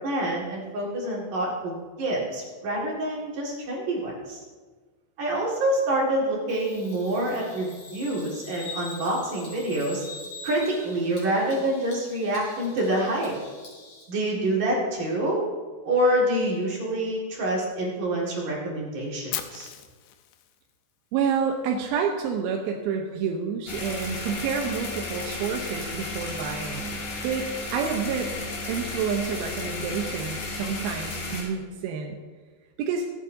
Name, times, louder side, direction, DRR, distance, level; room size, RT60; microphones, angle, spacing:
voice 1, 0.0-4.4 5.2-10.1 10.4-13.3 14.1-15.4 15.8-19.7, right 1 dB, 55° right, -3 dB, 3.2 m, -27 dB
Bird vocalization bird call bird song, 6.5-14.0, left 3 dB, 40° left, 4.3 m, -44 dB
Fire, 19.3-21.4, left 12 dB, 85° left, 2.2 m, -37 dB
voice 2, 21.1-28.3 28.7-32.2 32.8-33.1, right 6 dB, 75° right, 2 dB, 2.4 m, -29 dB
sound 1, 23.7-31.4, left 2 dB, 65° left, 4.7 m, -34 dB
24.5 x 8.3 x 2.7 m, 1.4 s
omnidirectional pair, 5.2 m